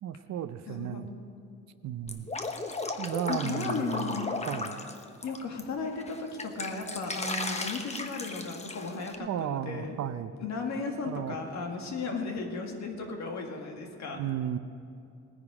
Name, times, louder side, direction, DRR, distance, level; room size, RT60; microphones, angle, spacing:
voice 1, 0.0-1.1 1.8-2.3 3.0-4.9 9.2-10.3 11.0-11.4 14.2-14.6, right 10 dB, 65° right, 12 dB, 0.7 m, -34 dB
voice 2, 0.7-1.1 3.3-4.3 5.2-10.0 10.4-14.2, left 4 dB, 65° left, 2 dB, 2.1 m, -35 dB
Drip, 2.1-5.6 6.0-9.1, left 3 dB, 20° left, 1.1 m, -36 dB
18.0 x 9.8 x 5.0 m, 2.6 s
cardioid pair, 90°, 30 cm